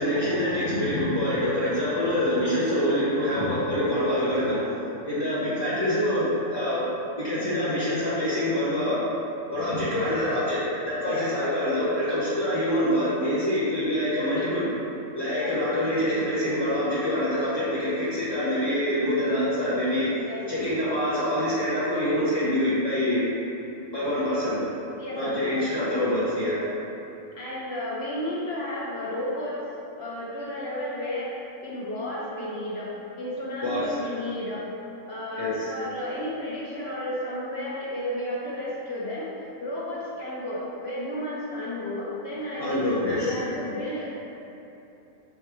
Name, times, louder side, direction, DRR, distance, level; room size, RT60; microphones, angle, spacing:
voice 1, 0.0-4.7 5.1-6.8 7.2-9.0 9.5-14.7 15.1-20.1 20.5-23.2 23.9-24.6 25.2-26.6 33.6-33.8 35.4-35.7 42.6-43.4, left 1 dB, 35° left, -12 dB, 0.4 m, -25 dB
voice 2, 15.3-15.6 20.3-20.4 25.0-25.6 27.4-29.6 30.0-31.3 31.6-32.9 33.2-34.7 35.1-39.3 39.6-44.2, left 1 dB, 60° left, -6 dB, 0.7 m, -32 dB
4.7 x 3.1 x 3.4 m, 2.9 s
omnidirectional pair, 1.5 m